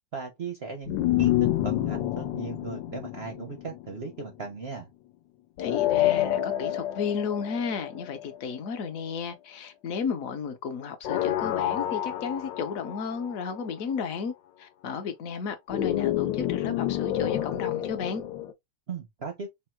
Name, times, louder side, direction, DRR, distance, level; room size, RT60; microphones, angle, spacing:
voice 1, 0.1-4.9 18.9-19.5, right 4 dB, 60° right, 0.6 m, -37 dB
sound 1, 0.9-4.2 5.6-8.4 11.0-13.7 15.7-18.5, left 13 dB, 85° left, 1.3 m, -28 dB
voice 2, 5.6-14.3 14.6-18.2, left 6 dB, 60° left, 1.0 m, -33 dB
3.5 x 2.1 x 4.3 m
omnidirectional pair, 2.0 m